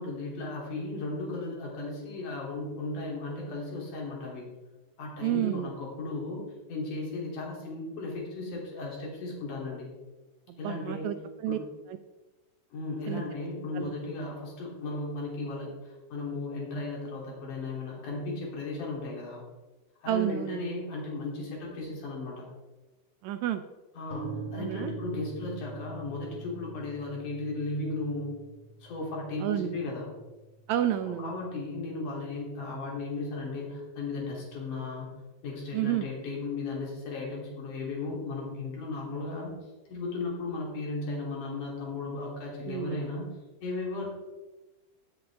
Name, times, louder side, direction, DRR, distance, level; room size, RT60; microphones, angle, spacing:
voice 1, 0.0-4.5 5.0-9.9 10.6-11.1 11.5-11.6 12.7-19.4 20.0-22.5 24.0-28.4 28.8-30.1 31.0-35.1 35.4-39.5 39.9-43.3 43.6-44.1, left 3 dB, 80° left, -3 dB, 4.5 m, -35 dB
voice 2, 5.2-5.7 10.5-11.6 13.1-13.2 13.7-13.9 20.1-20.6 23.2-23.6 24.5-24.9 29.4-29.7 30.7-31.4 35.7-36.1 42.7-43.0, right 12 dB, 80° right, 9 dB, 1.7 m, -30 dB
sound 1, 24.1-32.0, right 4 dB, 20° left, 3.1 m, -44 dB
17.0 x 7.9 x 3.4 m, 1.1 s
omnidirectional pair, 3.6 m